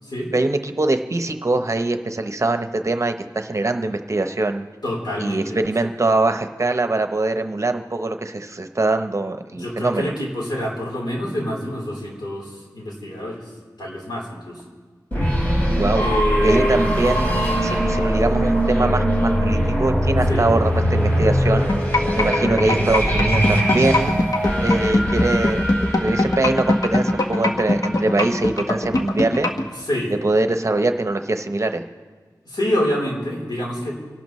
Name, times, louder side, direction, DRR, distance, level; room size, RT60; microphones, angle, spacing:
voice 1, 0.3-4.7 5.2-10.1 15.7-16.0 16.4-21.7 22.2-24.2 24.6-25.6 26.0-29.5 30.2-31.8, right 2 dB, 45° right, 7 dB, 0.8 m, -22 dB
voice 2, 4.8-5.9 9.6-13.5 13.8-14.6 16.0-16.9 20.3-20.5 29.8-30.2 32.5-33.9, left 1 dB, 80° left, -3 dB, 3.8 m, -26 dB
sound 1, 15.1-27.8, equal, 25° left, 3.7 m, -21 dB
sound 2, 21.7-29.6, left 2 dB, 55° left, 1.4 m, -20 dB
29.5 x 12.0 x 3.1 m, 1.5 s
wide cardioid pair, 85°, 7 cm